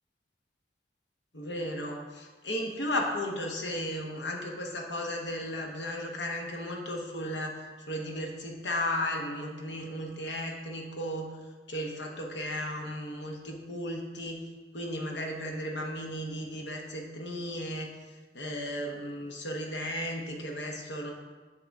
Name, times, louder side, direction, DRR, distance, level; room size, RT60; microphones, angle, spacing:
voice 1, 1.3-7.5 7.8-11.3 11.7-14.4 14.7-17.9 18.3-21.1, left 1 dB, 80° left, 1 dB, 1.0 m, -35 dB
7.4 x 6.6 x 3.5 m, 1.3 s
head